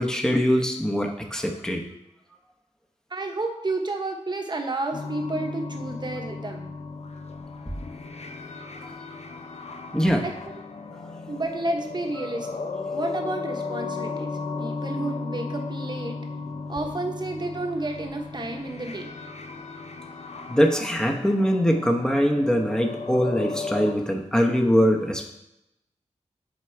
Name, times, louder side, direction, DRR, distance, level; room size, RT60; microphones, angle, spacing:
voice 1, 0.0-1.8 9.9-10.2 20.5-25.2, equal, 5° left, 2 dB, 0.9 m, -22 dB
voice 2, 3.1-6.7 10.2-10.5 11.3-12.5 12.9-14.3 14.6-16.2 16.7-19.1, right 2 dB, 35° right, 3 dB, 1.0 m, -31 dB
sound 1, 4.9-23.9, left 4 dB, 60° left, 0.7 m, -35 dB
8.0 x 3.8 x 4.5 m, 0.85 s
wide cardioid pair, 95°, 12 cm